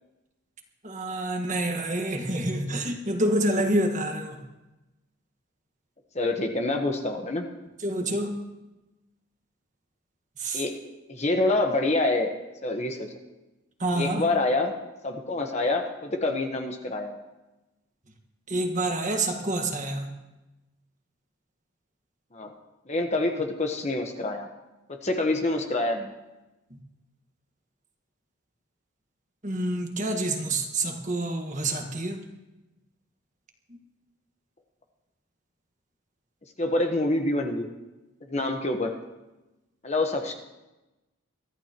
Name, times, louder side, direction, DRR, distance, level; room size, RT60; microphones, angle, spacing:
voice 1, 0.8-4.4 7.8-8.3 10.4-10.6 13.8-14.2 18.5-20.1 29.4-32.2, right 1 dB, 35° right, 4 dB, 1.6 m, -27 dB
voice 2, 6.1-7.5 10.5-10.7 11.1-12.3 12.6-13.1 13.9-14.7 15.0-17.1 22.3-22.5 22.9-24.5 24.9-26.1 36.6-37.7 38.2-38.9 39.8-40.3, left 2 dB, 30° left, 3 dB, 1.2 m, -26 dB
23.0 x 14.0 x 3.0 m, 1.0 s
head